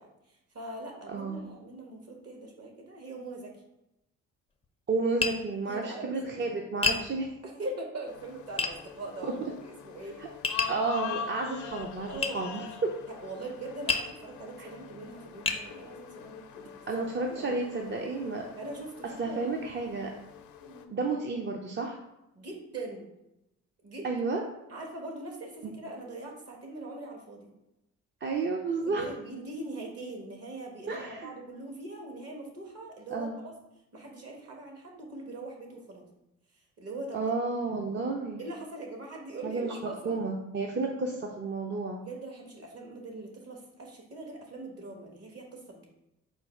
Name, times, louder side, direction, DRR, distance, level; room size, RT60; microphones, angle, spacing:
voice 1, 0.0-3.5 5.7-6.7 7.4-10.2 12.1-12.7 13.2-16.8 17.3-17.7 18.5-19.4 20.6-20.9 22.3-23.1 23.8-24.2 24.7-27.6 28.8-33.5 33.9-36.1 36.8-37.2 38.4-40.1 42.0-45.9, right 2 dB, 55° right, 1 dB, 1.3 m, -42 dB
voice 2, 1.1-1.4 4.9-7.3 9.2-9.3 10.2-10.3 10.7-12.9 14.6-14.7 16.9-18.5 19.2-20.1 20.9-22.0 24.0-24.4 25.6-25.7 28.2-29.0 30.9-31.3 33.1-33.4 37.1-38.4 39.4-39.8 40.1-42.0, right 3 dB, 40° right, 1 dB, 0.5 m, -31 dB
Tap, 5.2-5.4 6.8-7.1 8.6-8.7 10.4-10.8 12.2-12.4 13.9-14.1 14.8-14.9 15.5-15.6, left 4 dB, 20° left, 0.4 m, -28 dB
sound 1, 8.1-20.8, left 7 dB, 75° left, 0.5 m, -44 dB
4.5 x 2.3 x 4.3 m, 0.89 s
cardioid pair, 90°, 30 cm